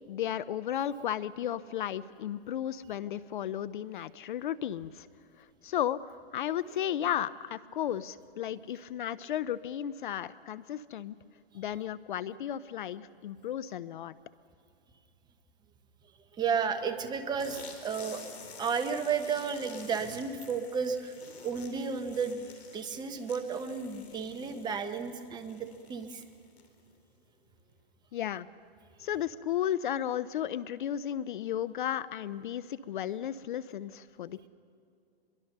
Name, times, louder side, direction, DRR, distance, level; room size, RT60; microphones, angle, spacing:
voice 1, 0.1-5.1 5.4-11.2 11.5-14.1 28.1-28.5 29.0-34.5, left 10 dB, 50° left, 17 dB, 0.6 m, -34 dB
voice 2, 16.4-18.2 18.6-21.1 21.4-26.2, right 6 dB, 15° right, 7 dB, 1.1 m, -33 dB
sound 1, 17.4-26.9, left 5 dB, 80° left, 4.0 m, -50 dB
24.5 x 22.5 x 6.7 m, 2.4 s
hypercardioid pair, 140°, 32 cm